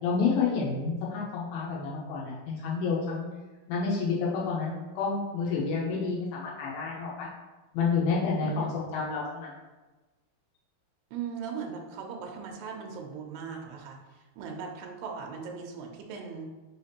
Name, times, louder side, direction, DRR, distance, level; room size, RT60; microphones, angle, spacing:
voice 1, 0.0-3.3 3.7-7.3 7.7-9.5, left 5 dB, 80° left, -4 dB, 2.4 m, -29 dB
voice 2, 11.1-16.5, right 6 dB, 80° right, 1 dB, 2.2 m, -39 dB
5.6 x 3.3 x 2.8 m, 1.2 s
omnidirectional pair, 4.5 m